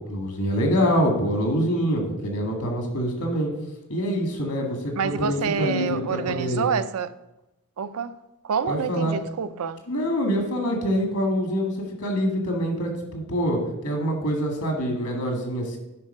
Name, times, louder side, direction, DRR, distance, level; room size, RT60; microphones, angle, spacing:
voice 1, 0.0-3.5 3.9-6.7 8.7-9.2 9.9-15.8, equal, 80° left, 2.0 m, -25 dB
voice 2, 5.0-7.1 7.8-8.1 8.4-9.8, right 6 dB, 75° right, 0.4 m, -27 dB
9.9 x 4.0 x 5.5 m
head